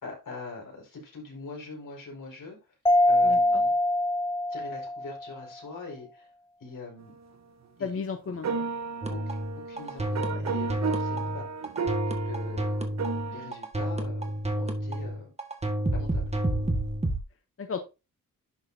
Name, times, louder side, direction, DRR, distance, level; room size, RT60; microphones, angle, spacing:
voice 1, 0.0-2.7 3.1-3.7 4.5-6.3 6.6-7.1 7.8-7.9 9.1-9.4 9.6-11.7 12.0-12.8 13.3-15.3 15.9-16.3, left 3 dB, 75° left, 0 dB, 4.9 m, -43 dB
Mallet percussion, 2.9-5.4, left 1 dB, 15° left, 0.4 m, -24 dB
voice 2, 3.2-3.6 7.8-8.6 17.6-17.8, left 5 dB, 45° left, 7 dB, 0.8 m, -34 dB
sound 1, 8.3-13.5, right 4 dB, 55° right, 1.0 m, -33 dB
sound 2, 9.0-17.2, right 1 dB, 20° right, 1.6 m, -30 dB
11.0 x 6.1 x 2.7 m, 0.28 s
wide cardioid pair, 130°, 32 cm